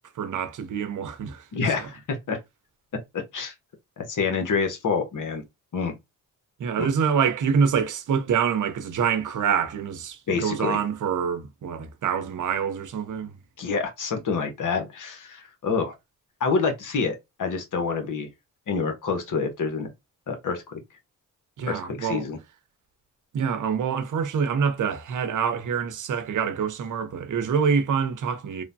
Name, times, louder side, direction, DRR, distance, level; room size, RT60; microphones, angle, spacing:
voice 1, 0.2-1.5 1.8-1.9 6.6-13.3 21.6-22.2 23.3-28.6, right 6 dB, 60° right, 0.7 m, -26 dB
voice 2, 1.5-2.4 3.1-3.5 4.0-5.4 5.7-6.0 6.8-6.9 10.3-10.8 13.6-16.0 16.4-18.3 18.7-19.9 20.3-20.8 21.7-22.4, left 5 dB, 60° left, 0.9 m, -27 dB
3.1 x 2.1 x 2.6 m
cardioid pair, 55°, 34 cm